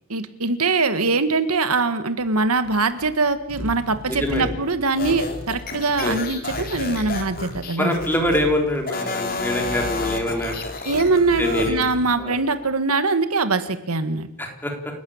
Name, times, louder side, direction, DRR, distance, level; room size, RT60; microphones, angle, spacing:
voice 1, 0.1-8.0 10.9-14.3, right 3 dB, 90° right, 10 dB, 1.8 m, -22 dB
sound 1, 2.2-12.8, equal, 70° right, 5.7 m, -38 dB
voice 2, 4.1-4.5 6.0-6.1 7.8-10.5 11.4-11.8 12.2-12.3 14.4-14.7, left 1 dB, 10° left, 2 dB, 3.9 m, -24 dB
sound 2, 4.9-8.4 8.8-11.7, left 3 dB, 40° left, 3.4 m, -31 dB
29.0 x 12.0 x 8.8 m, 0.76 s
head